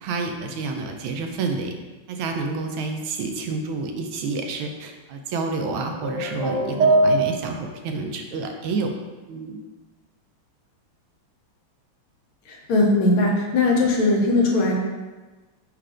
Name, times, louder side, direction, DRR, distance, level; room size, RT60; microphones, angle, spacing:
voice 1, 0.0-1.8 2.1-8.9 9.3-9.6, right 4 dB, 85° right, 4 dB, 1.4 m, -29 dB
sound 1, 5.6-7.7, right 2 dB, 70° right, 1.1 m, -22 dB
voice 2, 12.5-14.8, left 2 dB, 80° left, 0 dB, 1.6 m, -19 dB
4.4 x 2.5 x 4.8 m, 1.2 s
omnidirectional pair, 2.2 m